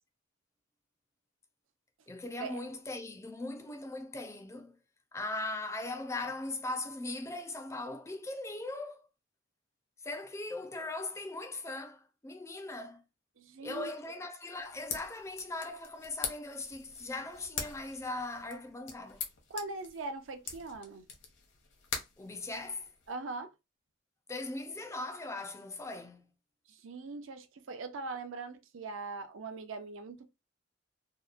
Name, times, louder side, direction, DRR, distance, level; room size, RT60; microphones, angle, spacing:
voice 1, 2.1-4.8 5.1-9.1 10.0-13.0 13.6-19.2 22.2-22.9 24.3-26.3, left 2 dB, 15° left, 0.4 m, -39 dB
voice 2, 13.4-14.1 19.5-21.1 23.1-23.5 26.7-30.3, right 3 dB, 80° right, 0.5 m, -41 dB
sound 1, 14.5-23.1, left 6 dB, 65° left, 0.7 m, -44 dB
2.8 x 2.1 x 2.4 m
head